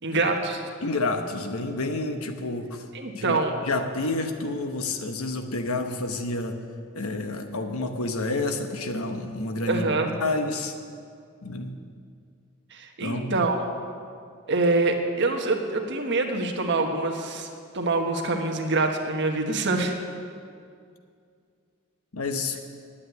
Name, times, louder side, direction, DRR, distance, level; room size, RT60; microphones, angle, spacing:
voice 1, 0.0-0.6 2.9-3.5 9.7-10.1 12.7-13.6 14.5-17.5 17.7-20.0, right 3 dB, 55° right, 3 dB, 1.3 m, -25 dB
voice 2, 0.8-2.8 3.1-6.6 6.9-10.7 11.4-11.8 13.0-13.5 22.1-22.6, left 2 dB, 85° left, 6 dB, 1.1 m, -29 dB
9.9 x 8.7 x 9.5 m, 2.3 s
head